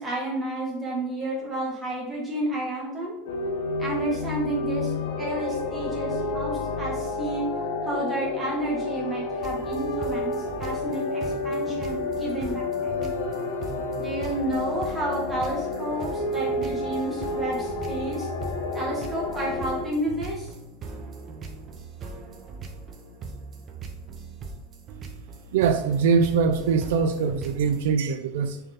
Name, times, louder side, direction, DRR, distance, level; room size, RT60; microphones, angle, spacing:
voice 1, 0.0-3.2 3.8-7.5 7.8-13.1 14.0-18.3 18.7-20.5, right 1 dB, 5° right, -5 dB, 1.9 m, -31 dB
sound 1, 3.3-19.9, left 3 dB, 90° left, 1.2 m, -30 dB
sound 2, 9.4-27.8, right 4 dB, 25° right, 0.8 m, -40 dB
voice 2, 25.5-28.6, right 6 dB, 70° right, 9 dB, 0.5 m, -23 dB
6.6 x 4.5 x 3.7 m, 0.96 s
supercardioid pair, 170°, 0 cm